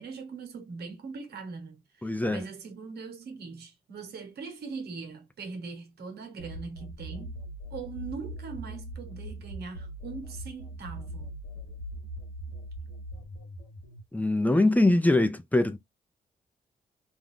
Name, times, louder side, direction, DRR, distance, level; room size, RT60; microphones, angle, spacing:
voice 1, 0.0-7.4 7.7-11.3, right 5 dB, 70° right, 1.2 m, -41 dB
voice 2, 2.0-2.5 14.1-15.8, left 2 dB, 10° left, 0.6 m, -23 dB
sound 1, 6.4-14.0, right 1 dB, 85° left, 1.0 m, -41 dB
2.6 x 2.2 x 3.6 m
hypercardioid pair, 45°, 17 cm